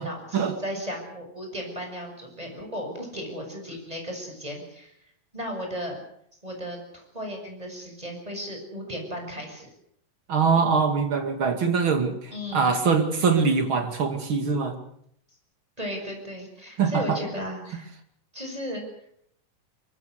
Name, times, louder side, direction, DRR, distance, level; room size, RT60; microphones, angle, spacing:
voice 1, 0.0-4.9 5.3-6.0 6.4-9.7 12.3-12.7 15.8-17.9 18.3-18.8, equal, 10° right, 2 dB, 7.0 m, -35 dB
voice 2, 10.3-14.8 16.8-17.2, right 5 dB, 40° right, 7 dB, 2.9 m, -23 dB
24.0 x 22.0 x 6.7 m, 0.70 s
omnidirectional pair, 3.8 m